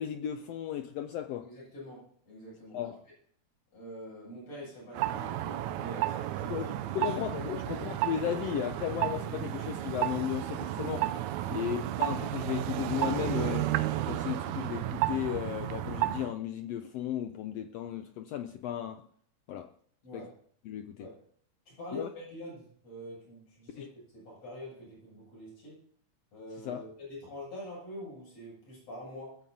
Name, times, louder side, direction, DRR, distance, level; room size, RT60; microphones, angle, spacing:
voice 1, 0.0-1.5 2.7-2.9 6.5-11.1 11.5-13.7 14.0-19.0 19.5-19.7 20.1-20.3 20.7-21.1 21.9-22.1 23.8-23.9 26.6-26.8, left 11 dB, 85° left, 1.4 m, -35 dB
voice 2, 1.4-3.0 3.7-7.2 7.5-7.9 11.4-11.7 20.0-20.4 21.0-21.2 21.7-25.8 26.3-29.4, equal, 55° left, 8.9 m, -45 dB
sound 1, 4.9-16.3, right 13 dB, 75° right, 1.9 m, -32 dB
20.5 x 15.0 x 2.8 m
omnidirectional pair, 3.6 m